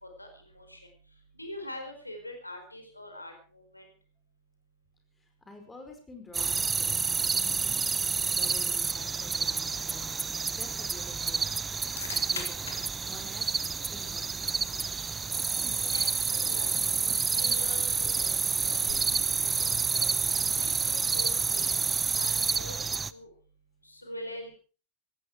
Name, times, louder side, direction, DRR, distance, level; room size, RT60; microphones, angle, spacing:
voice 1, 0.0-0.8 1.3-3.8 15.7-16.7 17.3-17.9 18.2-19.0 19.4-20.0 20.6-21.8 22.1-23.3 23.8-24.5, left 1 dB, 85° left, 5 dB, 4.4 m, -43 dB
voice 2, 5.5-7.9 8.3-11.5 12.3-13.4 13.9-14.7 15.6-15.8, left 3 dB, 10° left, 4 dB, 5.0 m, -49 dB
sound 1, 6.3-23.1, right 5 dB, 15° right, 0.7 m, -29 dB
sound 2, 11.9-21.5, left 5 dB, 70° left, 3.9 m, -49 dB
18.5 x 15.5 x 4.7 m, 0.38 s
figure-of-eight pair, 90°, 0 cm